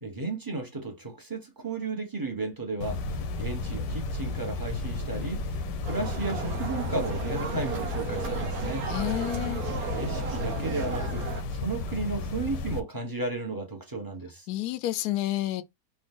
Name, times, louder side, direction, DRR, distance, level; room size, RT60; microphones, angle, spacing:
voice 1, 0.0-8.9 9.9-11.2 11.5-14.5, right 3 dB, 15° right, 1.1 m, -34 dB
sound 1, 2.8-12.8, left 3 dB, 90° left, 1.4 m, -33 dB
sound 2, 5.9-11.4, right 6 dB, 65° right, 1.3 m, -35 dB
voice 2, 8.9-9.6 14.5-15.6, left 14 dB, 75° left, 1.0 m, -29 dB
4.3 x 2.6 x 3.7 m
omnidirectional pair, 1.8 m